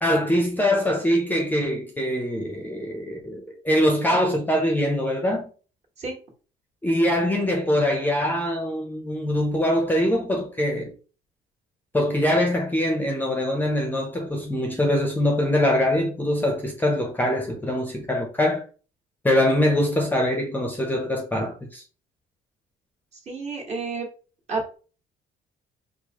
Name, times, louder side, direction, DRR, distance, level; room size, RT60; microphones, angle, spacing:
voice 1, 0.0-5.5 6.8-10.9 11.9-18.6 19.2-21.8, left 1 dB, 10° left, 0.6 m, -23 dB
voice 2, 23.3-24.1 24.5-24.8, right 4 dB, 40° right, 1.5 m, -30 dB
4.5 x 2.1 x 2.9 m
cardioid pair, 110°, 17 cm